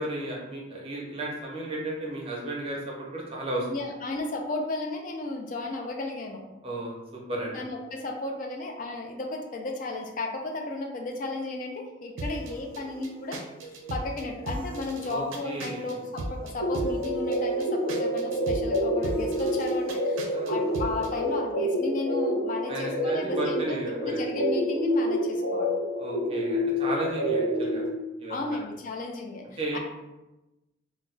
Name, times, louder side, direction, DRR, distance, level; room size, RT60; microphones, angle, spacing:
voice 1, 0.0-3.7 6.6-7.6 15.1-15.9 20.3-20.5 22.7-24.2 26.0-27.8 28.2-28.4 29.6-29.8, right 1 dB, 30° right, -2 dB, 0.5 m, -34 dB
voice 2, 3.7-6.5 7.5-13.4 13.7-25.7 28.3-29.8, left 2 dB, 40° left, 2 dB, 0.3 m, -34 dB
sound 1, 12.2-21.1, right 1 dB, 85° right, 0.4 m, -38 dB
sound 2, 16.6-27.9, equal, 60° left, 1.1 m, -28 dB
2.2 x 2.0 x 3.8 m, 1.0 s
head